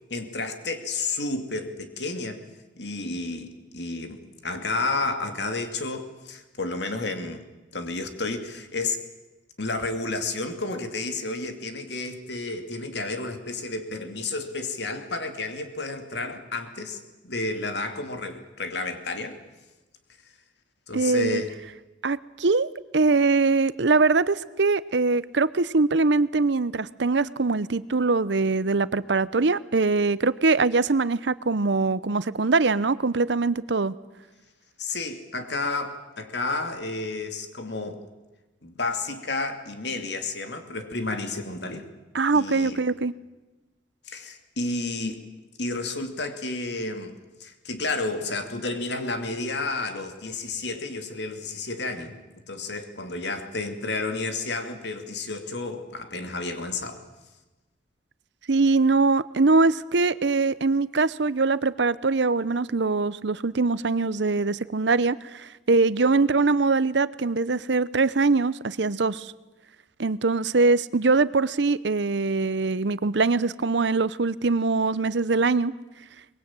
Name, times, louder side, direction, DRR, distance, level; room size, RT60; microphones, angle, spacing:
voice 1, 0.1-2.4 2.8-7.4 7.7-9.0 9.6-19.4 20.9-21.5 34.8-38.0 38.6-41.9 42.3-42.8 44.1-45.2 45.6-47.1 47.4-52.1 52.5-57.0, left 3 dB, 65° left, 7 dB, 2.7 m, -31 dB
voice 2, 20.9-21.4 22.0-33.9 42.1-43.1 58.5-69.3 70.0-75.7, right 3 dB, 70° right, 17 dB, 0.8 m, -22 dB
23.5 x 21.5 x 8.9 m, 1.1 s
head